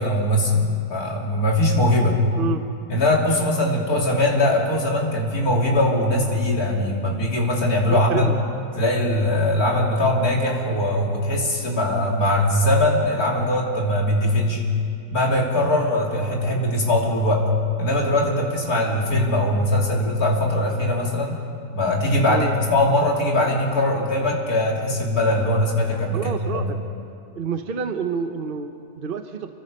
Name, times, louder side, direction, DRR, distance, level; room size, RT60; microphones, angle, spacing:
voice 1, 0.0-2.2 2.9-8.3 8.8-14.6 15.1-17.5 17.8-21.4 21.7-26.7, left 1 dB, 55° left, -2 dB, 3.7 m, -21 dB
voice 2, 7.9-8.4 22.3-22.5 26.1-26.8 27.3-29.5, right 6 dB, 45° right, 7 dB, 0.8 m, -28 dB
29.0 x 23.0 x 5.4 m, 2.4 s
omnidirectional pair, 1.9 m